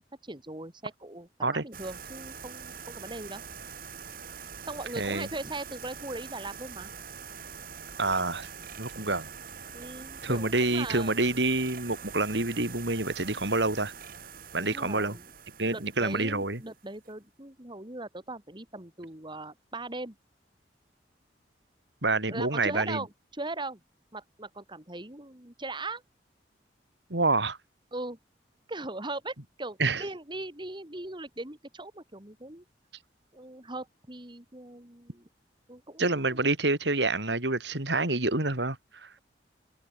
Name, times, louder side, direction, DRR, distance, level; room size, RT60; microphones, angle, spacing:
voice 1, 0.0-3.4 4.6-6.9 9.7-11.4 14.6-15.3 15.7-20.2 22.3-23.8 24.1-26.0 27.9-28.2 28.7-32.6 33.3-35.3 35.7-36.5, right 2 dB, 25° right, 3.9 m, -39 dB
sound 1, 1.7-17.1, right 6 dB, 55° right, 5.1 m, -44 dB
voice 2, 5.0-5.3 8.0-8.5 8.8-9.3 10.2-13.9 14.5-15.2 15.6-16.6 22.0-23.0 27.1-27.6 29.8-30.0 36.0-39.1, right 2 dB, 75° right, 3.9 m, -27 dB
open air
head